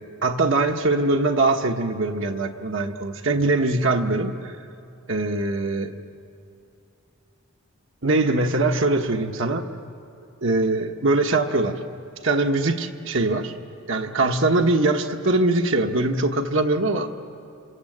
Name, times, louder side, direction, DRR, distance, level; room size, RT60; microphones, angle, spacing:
voice 1, 0.2-4.5 5.1-5.9 8.0-9.7 10.4-11.8 12.2-13.5 13.9-17.3, right 2 dB, 60° right, 4 dB, 1.3 m, -22 dB
27.5 x 27.0 x 8.0 m, 2.6 s
head